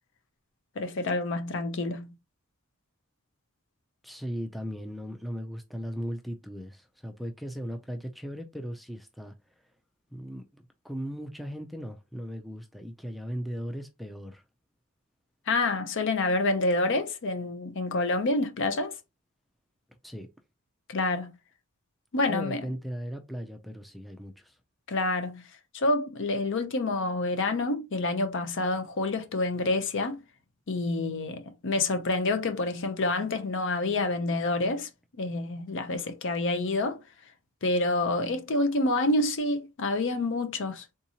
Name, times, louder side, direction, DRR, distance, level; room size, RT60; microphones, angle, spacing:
voice 1, 0.8-2.1 15.5-19.0 20.9-21.3 22.1-22.6 24.9-25.4 25.7-30.2 30.7-34.9 35.2-37.0 37.6-41.0, left 2 dB, 60° left, 0.6 m, -28 dB
voice 2, 4.0-9.3 10.1-14.4 20.0-20.3 22.3-24.6, equal, ahead, 0.3 m, -37 dB
3.6 x 2.8 x 2.7 m
head